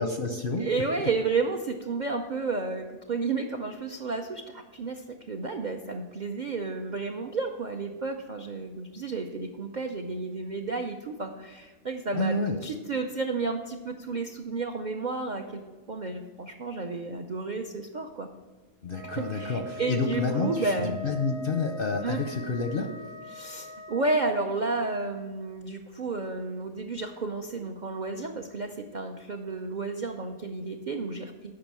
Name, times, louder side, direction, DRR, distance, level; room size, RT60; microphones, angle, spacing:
voice 1, 0.0-0.7 12.1-12.6 18.8-22.9, left 3 dB, 55° left, 5 dB, 0.6 m, -29 dB
voice 2, 0.6-4.4 4.8-4.9 5.3-11.3 11.9-12.4 12.6-15.4 15.9-16.2 16.6-17.6 17.9-18.3 19.3-21.0 22.0-22.2 23.4-28.7 28.9-31.3, right 3 dB, 65° right, 3 dB, 0.4 m, -31 dB
Wind instrument woodwind instrument, 18.9-24.2, equal, 80° right, 2.1 m, -41 dB
8.7 x 5.5 x 7.4 m, 1.3 s
omnidirectional pair, 1.6 m